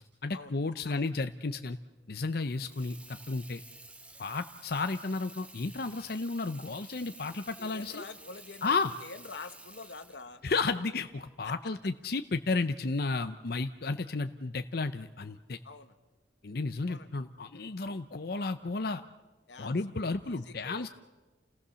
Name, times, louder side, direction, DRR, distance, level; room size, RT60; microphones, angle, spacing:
voice 1, 0.2-1.8 2.1-3.6 4.2-8.0 8.6-8.9 10.4-15.6 16.4-19.0 19.6-20.9, left 3 dB, 60° left, 9 dB, 0.7 m, -33 dB
Water tap faucet / Sink (filling or washing), 2.4-12.0, right 2 dB, 5° right, 1.3 m, -52 dB
voice 2, 7.6-10.4 11.4-11.5 15.6-15.9 16.9-17.1 19.5-20.9, left 4 dB, 85° left, 10 dB, 1.3 m, -47 dB
29.0 x 18.5 x 7.0 m, 1.2 s
head